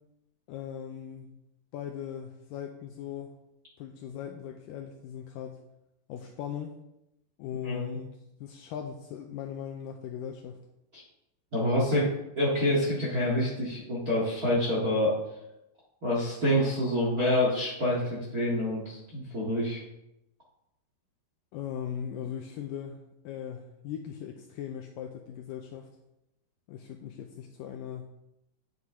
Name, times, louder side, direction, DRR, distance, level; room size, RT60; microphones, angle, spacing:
voice 1, 0.5-1.4 1.7-3.3 3.8-5.6 6.1-6.8 7.4-10.6 21.5-25.9 26.7-28.1, left 9 dB, 90° left, 4 dB, 2.0 m, -39 dB
voice 2, 11.5-15.1 16.0-19.8, left 1 dB, 45° right, -5 dB, 1.1 m, -27 dB
9.3 x 8.0 x 3.6 m, 0.87 s
omnidirectional pair, 4.5 m